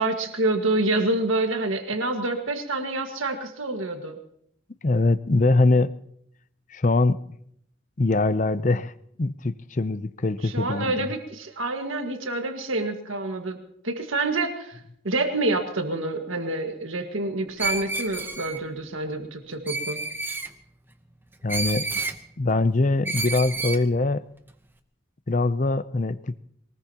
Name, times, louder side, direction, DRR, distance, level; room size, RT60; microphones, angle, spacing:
voice 1, 0.0-4.2 10.4-13.6 13.8-20.0, right 2 dB, 80° right, 5 dB, 1.8 m, -27 dB
voice 2, 4.8-5.9 6.7-7.2 8.0-8.9 9.2-11.1 21.4-21.9 22.4-24.3 25.3-26.4, left 2 dB, 40° left, 15 dB, 0.5 m, -23 dB
Screech, 17.6-18.6 19.7-20.5 21.5-22.2 23.0-23.8, right 3 dB, 10° right, 0.8 m, -30 dB
22.5 x 19.5 x 2.9 m, 0.69 s
head